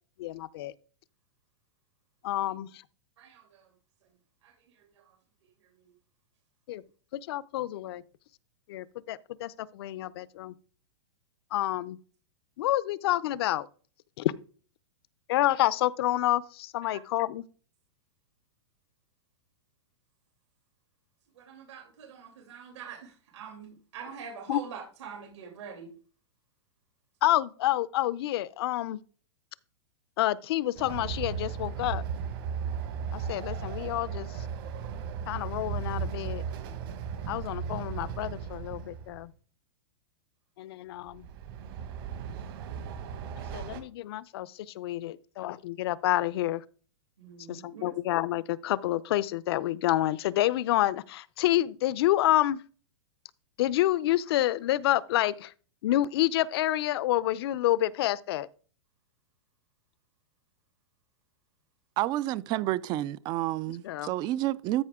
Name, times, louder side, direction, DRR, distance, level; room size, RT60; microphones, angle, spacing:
voice 1, 0.2-0.7 2.2-2.7 6.7-6.8 7.1-8.0 8.7-10.5 11.5-12.0 12.6-13.7 14.2-14.3 15.3-17.4 24.5-24.6 27.2-29.0 30.2-32.0 33.1-34.3 35.3-36.4 37.3-39.3 40.6-41.3 43.5-46.6 47.5-52.6 53.6-55.5 55.8-58.5 63.8-64.1, left 14 dB, 60° left, 0.6 m, -28 dB
voice 2, 3.2-3.7 4.4-5.2 5.8-5.9 16.8-17.0 21.3-25.9 47.2-47.9, right 6 dB, 75° right, 2.8 m, -45 dB
Train, 30.7-39.2 41.1-43.8, right 7 dB, 50° right, 1.5 m, -36 dB
voice 3, 62.0-64.8, right 15 dB, 25° right, 0.4 m, -29 dB
13.0 x 5.6 x 3.6 m
hypercardioid pair, 145°, 15 cm